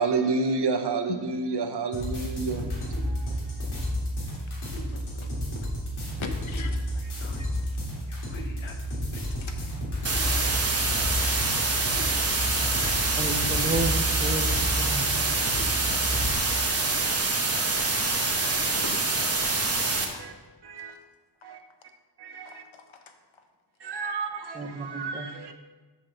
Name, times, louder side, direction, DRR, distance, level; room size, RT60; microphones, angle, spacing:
voice 1, 0.0-3.3 4.3-4.5 17.6-18.6 19.7-20.3 20.6-21.0 21.4-21.6 22.2-22.6 23.8-25.5, right 4 dB, 60° right, 1.0 m, -31 dB
sound 1, 1.9-16.3, equal, 60° left, 3.2 m, -31 dB
voice 2, 4.8-5.3 6.2-9.8 11.5-11.7 12.8-12.9 18.8-19.1 20.1-20.2 20.9-21.0 22.4-23.1, left 5 dB, 90° left, 1.2 m, -43 dB
sound 2, 10.0-20.0, right 3 dB, 30° right, 1.2 m, -26 dB
voice 3, 13.2-14.5 14.8-15.1 24.6-25.3, right 2 dB, 15° right, 0.7 m, -31 dB
7.5 x 5.9 x 6.3 m
wide cardioid pair, 145°, 46 cm